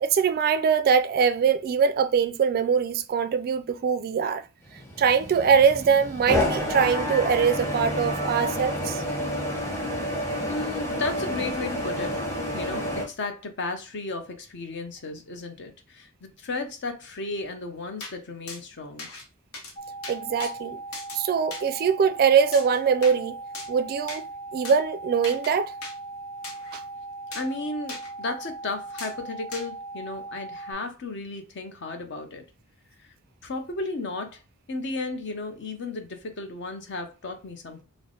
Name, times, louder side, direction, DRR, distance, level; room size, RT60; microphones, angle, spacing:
voice 1, 0.0-4.4 5.0-9.0 20.1-20.8 21.1-23.4 23.7-24.2 24.5-25.7 26.7-26.8, right 6 dB, 45° right, 0.3 m, -22 dB
sound 1, 4.8-13.1, left 1 dB, 10° left, 1.0 m, -29 dB
voice 2, 10.4-12.2 12.5-19.1 27.3-32.4 33.0-33.1 33.4-34.4 34.7-37.8, left 3 dB, 55° left, 0.7 m, -34 dB
sound 2, 18.0-18.1 18.5-18.6 19.0-19.2 19.5-19.7 20.0-20.5 20.9-21.2 21.5-21.6 22.5-23.2 23.5-23.7 24.1-24.2 24.6-24.8 25.2-25.5 25.8-25.9 26.4-26.8 27.3-27.5 27.9-28.1 29.0-29.1 29.5-29.7, left 3 dB, 75° left, 1.0 m, -38 dB
sound 3, 19.8-30.7, right 2 dB, 30° left, 0.4 m, -39 dB
3.2 x 2.1 x 3.9 m
head